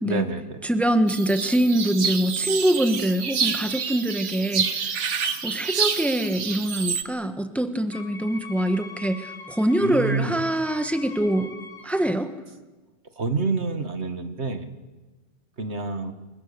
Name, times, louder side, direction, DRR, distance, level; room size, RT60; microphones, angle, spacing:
voice 1, 0.0-0.6 9.8-10.4 13.2-14.7 15.6-16.1, right 3 dB, 70° right, 7 dB, 2.0 m, -27 dB
voice 2, 0.6-5.1 5.4-11.5 11.8-12.3, right 1 dB, ahead, 8 dB, 1.5 m, -24 dB
sound 1, 1.1-7.0, right 6 dB, 90° right, 1.5 m, -28 dB
Wind instrument woodwind instrument, 7.9-12.2, left 4 dB, 35° left, 3.0 m, -43 dB
29.0 x 24.0 x 6.9 m, 1.2 s
omnidirectional pair, 1.2 m